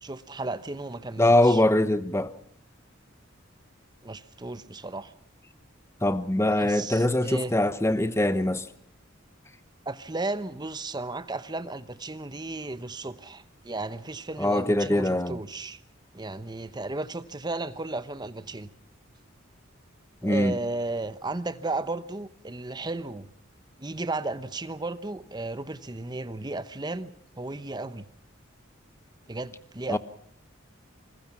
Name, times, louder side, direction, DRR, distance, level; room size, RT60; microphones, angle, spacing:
voice 1, 0.0-1.6 4.0-5.1 6.6-7.5 9.9-15.8 16.1-18.7 20.2-23.3 23.8-28.1 29.3-30.0, right 2 dB, 20° right, 0.9 m, -34 dB
voice 2, 1.2-2.3 6.0-8.7 14.4-15.4 20.2-20.5 29.9-30.0, left 1 dB, 15° left, 0.9 m, -23 dB
26.5 x 21.0 x 6.0 m
head